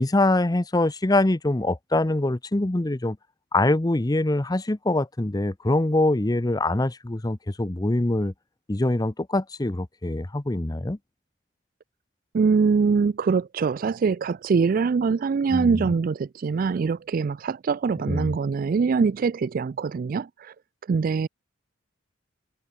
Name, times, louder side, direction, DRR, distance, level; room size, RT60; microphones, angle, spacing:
voice 1, 0.0-3.2 3.5-8.3 8.7-11.0 15.5-15.8 18.1-18.3, left 2 dB, 20° left, 0.7 m, -24 dB
voice 2, 12.3-20.5 20.9-21.3, right 5 dB, 45° right, 0.3 m, -23 dB
head